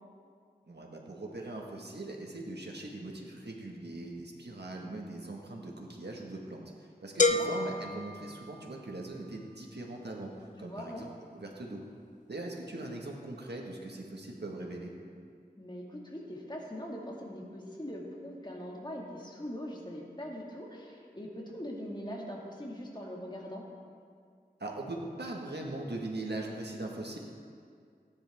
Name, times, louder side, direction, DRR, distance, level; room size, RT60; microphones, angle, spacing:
voice 1, 0.6-10.3 10.6-11.1 11.3-11.8 12.3-14.9 24.6-27.2, right 2 dB, 75° right, 0 dB, 1.6 m, -40 dB
voice 2, 7.1-7.5 10.6-11.0 15.6-23.6, equal, 25° left, -2 dB, 2.1 m, -42 dB
sound 1, 7.2-9.1, left 3 dB, 45° left, 0.5 m, -30 dB
16.5 x 10.0 x 3.6 m, 2.3 s
wide cardioid pair, 55°, 17 cm